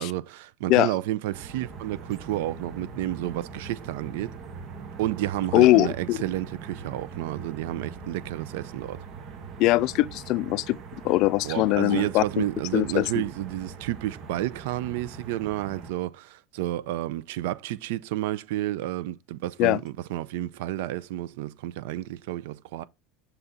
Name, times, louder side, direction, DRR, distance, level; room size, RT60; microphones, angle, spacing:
voice 1, 0.0-4.4 5.0-9.0 11.4-22.8, right 14 dB, 75° right, 0.5 m, -31 dB
sound 1, 1.3-15.9, right 5 dB, 40° right, 1.1 m, -42 dB
voice 2, 5.5-6.2 9.6-10.8 11.0-12.4 12.7-13.1 19.6-19.8, left 18 dB, 55° left, 0.3 m, -21 dB
6.8 x 4.0 x 3.6 m
supercardioid pair, 135°, 0 cm